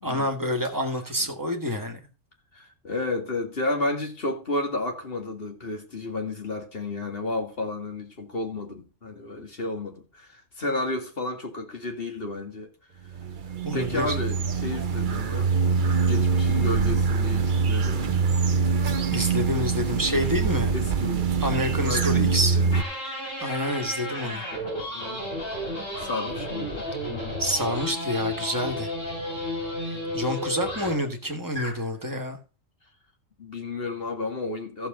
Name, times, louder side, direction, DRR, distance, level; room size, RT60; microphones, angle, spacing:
voice 1, 0.0-2.0 13.6-14.2 19.1-20.7 21.4-22.6 23.4-24.4 27.4-28.9 29.9-32.4, equal, 15° right, 1.8 m, -28 dB
voice 2, 2.5-12.7 13.7-15.5 16.0-18.2 20.7-22.7 24.9-25.3 25.7-26.9 30.6-30.7 33.4-34.9, left 2 dB, 45° left, 2.3 m, -32 dB
sound 1, 13.1-22.8, right 5 dB, 45° right, 0.9 m, -24 dB
sound 2, 20.1-20.3 21.9-22.3 22.7-31.1 31.5-31.8, left 1 dB, 75° left, 6.0 m, -33 dB
14.0 x 7.1 x 3.8 m
omnidirectional pair, 1.3 m